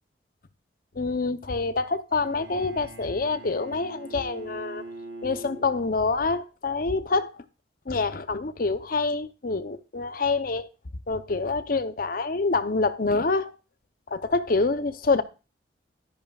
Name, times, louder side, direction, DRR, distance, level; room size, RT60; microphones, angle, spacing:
voice 1, 0.9-4.8 5.2-7.4 7.9-10.7 11.1-13.5 14.1-15.2, left 3 dB, 50° left, 0.7 m, -26 dB
Bowed string instrument, 2.1-6.2, right 2 dB, 70° right, 2.0 m, -43 dB
12.5 x 10.5 x 2.4 m
head